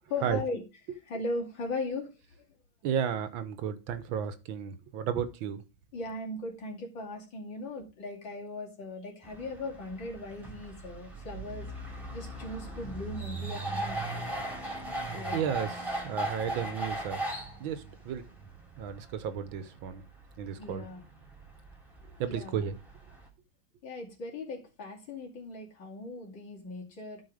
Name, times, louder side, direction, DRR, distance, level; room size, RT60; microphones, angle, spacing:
voice 1, 0.1-0.6 1.1-2.1 5.9-11.7 12.1-14.0 15.1-15.4 20.6-21.0 22.0-22.6 23.8-27.2, left 2 dB, 65° left, 3.3 m, -38 dB
voice 2, 2.8-5.6 15.1-17.2 17.6-18.3 18.8-20.0 20.4-20.9 22.2-22.8, right 8 dB, 75° right, 1.6 m, -33 dB
sound 1, 9.2-23.3, right 1 dB, ahead, 2.4 m, -39 dB
12.0 x 4.9 x 5.0 m
omnidirectional pair, 2.2 m